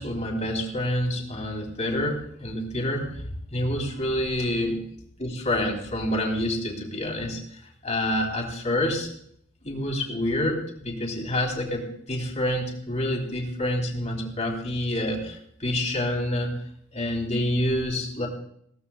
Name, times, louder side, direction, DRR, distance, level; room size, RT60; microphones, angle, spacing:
voice 1, 0.0-3.1 3.5-4.8 5.2-7.4 7.8-9.1 9.6-16.6 16.9-18.3, left 1 dB, 35° left, 1 dB, 3.2 m, -27 dB
21.0 x 16.5 x 2.3 m, 0.70 s
head